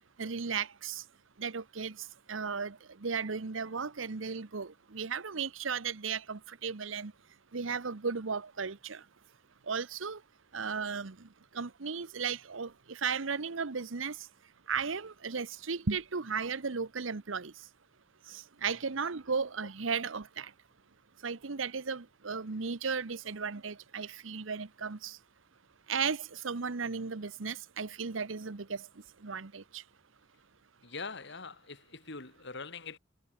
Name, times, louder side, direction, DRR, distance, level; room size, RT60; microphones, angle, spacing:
voice 1, 0.2-1.0 1.4-2.0 2.3-7.1 7.5-9.0 9.7-10.2 10.5-11.3 11.5-14.2 14.7-17.5 18.3-20.5 21.2-25.2 25.9-28.9 29.2-29.8, right 5 dB, 85° right, 1.0 m, -35 dB
voice 2, 30.8-33.0, left 4 dB, 65° left, 4.5 m, -43 dB
head